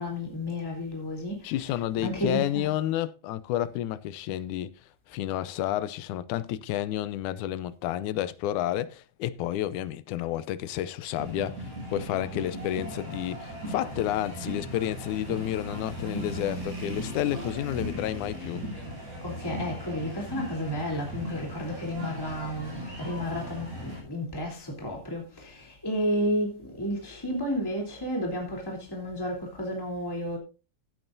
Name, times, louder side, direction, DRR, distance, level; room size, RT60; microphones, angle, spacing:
voice 1, 0.0-1.5 2.0-2.7 19.2-30.4, equal, 5° left, 3.1 m, -32 dB
voice 2, 1.4-4.7 5.1-18.6, left 12 dB, 80° left, 2.1 m, -30 dB
sound 1, 11.2-24.0, equal, 70° right, 7.9 m, -37 dB
16.5 x 9.0 x 2.7 m
omnidirectional pair, 3.5 m